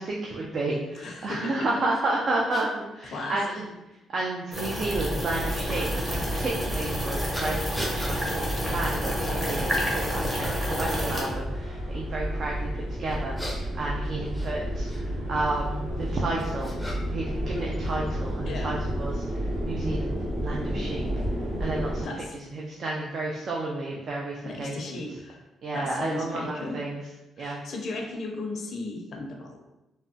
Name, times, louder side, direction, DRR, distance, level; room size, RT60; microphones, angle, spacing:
voice 1, 0.0-3.6 4.1-16.7 17.1-19.4 19.7-21.1 21.6-22.1 22.3-25.0 25.6-27.0 27.4-27.6, right 2 dB, 55° right, -2 dB, 0.4 m, -31 dB
voice 2, 0.9-1.8 3.0-3.4 18.4-18.8 22.0-22.3 24.4-25.4 25.7-26.8 27.4-29.6, left 2 dB, 60° left, 1 dB, 0.5 m, -36 dB
sound 1, 1.9-2.0 2.5-2.7 3.5-3.6 5.7-5.9 7.3-8.2 8.8-9.0 9.4-9.9 10.4-10.9 13.1-15.0 16.0-17.3 17.5-18.4, equal, ahead, 0.5 m, -40 dB
sound 2, 4.5-11.3, equal, 20° right, 0.8 m, -30 dB
sound 3, 4.8-22.1, equal, 70° right, 1.4 m, -31 dB
3.3 x 2.0 x 2.7 m, 0.98 s
cardioid pair, 90°, 0 cm